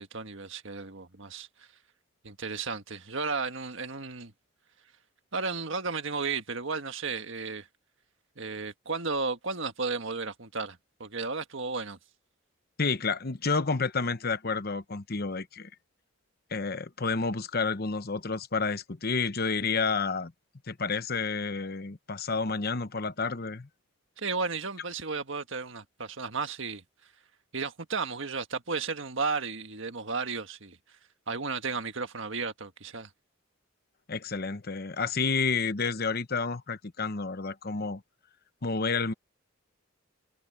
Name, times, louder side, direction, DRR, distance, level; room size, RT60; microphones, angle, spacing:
voice 1, 0.0-1.5 2.2-4.3 5.3-7.7 8.4-12.0 24.2-26.8 27.5-30.8 31.3-33.1, right 4 dB, 60° right, 1.6 m, -33 dB
voice 2, 12.8-15.7 16.5-20.3 20.7-23.7 34.1-38.0 38.6-39.1, left 4 dB, 45° left, 0.9 m, -30 dB
head